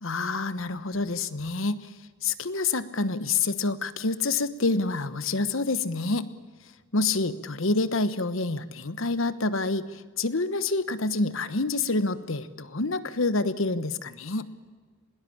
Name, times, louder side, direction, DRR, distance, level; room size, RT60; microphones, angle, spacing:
voice 1, 0.0-1.9 2.2-6.3 6.9-14.5, left 3 dB, 65° left, 13 dB, 1.1 m, -27 dB
21.0 x 19.0 x 8.7 m, 1.5 s
head